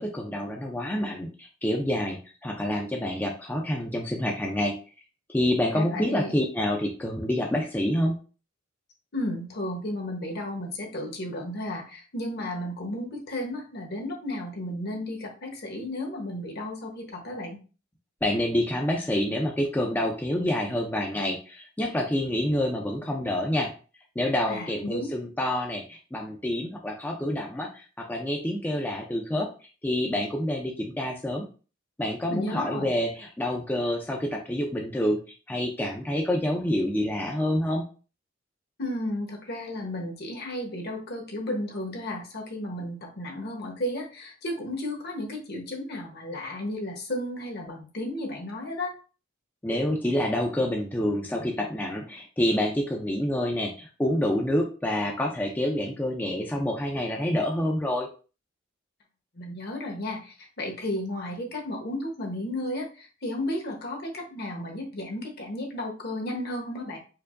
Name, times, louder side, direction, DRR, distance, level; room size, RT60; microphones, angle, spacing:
voice 1, 0.0-4.7 5.3-8.2 18.2-23.7 24.2-29.5 29.8-31.4 32.0-35.2 35.5-37.8 49.6-58.1, left 1 dB, 10° left, 0 dB, 0.4 m, -27 dB
voice 2, 5.7-6.3 9.1-17.6 24.5-25.1 32.3-33.0 38.8-48.9 59.3-67.0, left 1 dB, 55° left, 1 dB, 1.0 m, -33 dB
4.5 x 2.6 x 2.5 m, 0.36 s
head